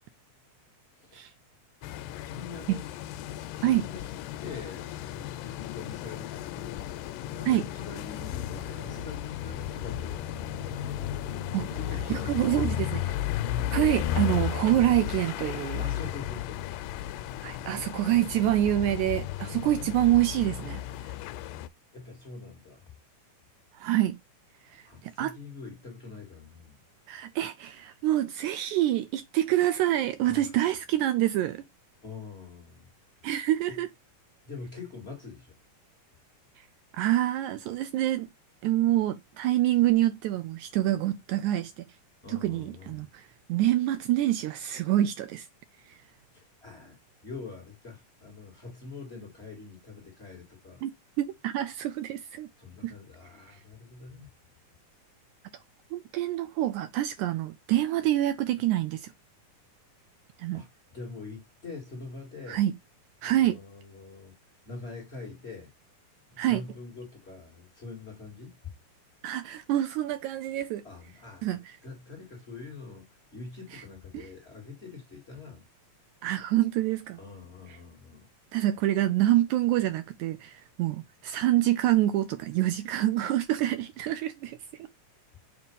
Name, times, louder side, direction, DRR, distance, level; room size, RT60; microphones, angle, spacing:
sound 1, 1.8-21.7, left 12 dB, 90° left, 2.1 m, -34 dB
voice 1, 2.3-2.8 3.3-4.1 4.4-7.0 7.4-10.3 11.5-13.1 15.8-17.0 21.9-22.9 24.6-26.8 30.2-30.5 32.0-32.9 33.7-33.8 34.4-35.5 42.2-43.0 46.3-47.0 47.2-50.8 52.6-54.3 60.5-62.6 63.2-64.3 64.7-65.7 66.3-68.6 70.8-71.5 71.8-73.1 73.3-75.6 77.2-78.3, left 4 dB, 25° left, 2.0 m, -44 dB
sound 2, 8.5-16.2, right 1 dB, 40° right, 1.6 m, -47 dB
voice 2, 12.1-13.2 13.7-15.8 17.4-21.1 23.7-24.2 24.7-25.3 27.1-31.6 33.2-33.9 36.6-36.7 36.9-38.3 38.6-41.9 42.3-45.5 45.9-46.0 50.8-50.9 51.2-52.5 52.8-52.9 53.5-53.6 55.9-59.1 60.4-60.6 62.5-62.7 63.2-63.6 66.4-66.6 69.2-70.8 71.4-71.8 73.7-73.8 74.1-74.3 76.2-77.2 77.7-77.8 78.5-84.6, right 14 dB, 80° right, 1.8 m, -26 dB
6.6 x 3.0 x 5.3 m
omnidirectional pair, 3.6 m